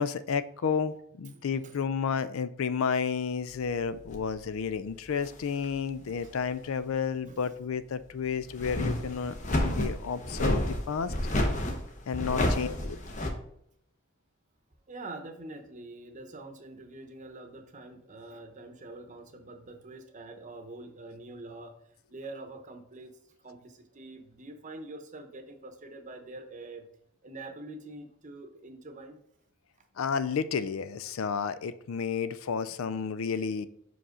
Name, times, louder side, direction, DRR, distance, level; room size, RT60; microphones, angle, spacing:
voice 1, 0.0-11.1 12.1-13.0 30.0-33.7, left 6 dB, 75° left, 14 dB, 0.4 m, -31 dB
voice 2, 1.3-1.8 6.0-6.3 7.2-7.5 12.1-12.5 14.9-21.8 22.1-23.2 23.4-26.9 27.2-29.2, right 2 dB, 35° right, 5 dB, 0.8 m, -45 dB
sound 1, 4.1-4.3 5.1-5.7 6.2-6.3 8.5-13.3, left 1 dB, 35° left, 0.8 m, -30 dB
5.4 x 5.1 x 3.8 m, 0.72 s
head